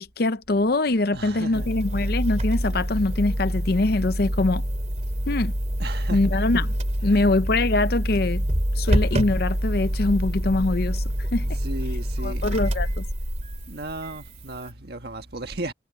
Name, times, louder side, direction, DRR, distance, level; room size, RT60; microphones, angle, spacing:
voice 1, 0.0-4.6 5.3-5.5 6.1-6.8 7.0-8.4 8.8-11.0 11.3-11.5 12.2-13.0, left 2 dB, 50° left, 0.6 m, -23 dB
voice 2, 1.1-1.7 5.8-6.4 7.1-7.2 11.6-12.4 13.7-15.7, right 2 dB, 55° right, 1.7 m, -35 dB
sound 1, 1.5-14.7, equal, 35° right, 3.1 m, -26 dB
head